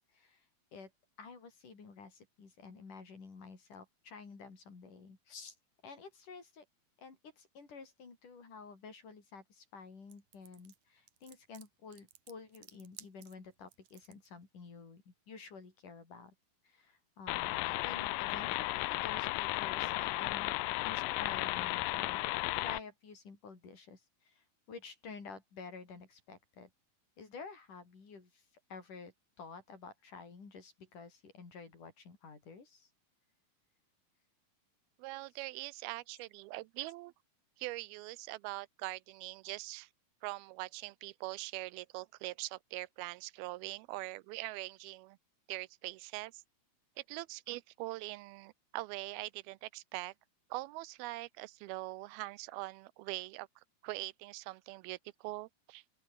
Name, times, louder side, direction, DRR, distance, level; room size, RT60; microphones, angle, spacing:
voice 1, 0.1-0.5 0.7-0.9 1.2-5.5 5.8-6.6 7.0-16.3 16.6-20.6 20.8-22.2 22.6-26.7 27.2-32.9, left 5 dB, 55° left, 6.6 m, -51 dB
sound 1, 10.1-14.3, right 12 dB, 60° right, 2.4 m, -56 dB
sound 2, 17.3-22.8, left 20 dB, 80° left, 2.1 m, -34 dB
voice 2, 35.0-37.1 37.6-39.9 40.2-45.2 45.5-46.4 47.0-50.1 50.5-53.5 53.8-55.8, right 20 dB, 85° right, 2.4 m, -42 dB
open air
omnidirectional pair, 4.4 m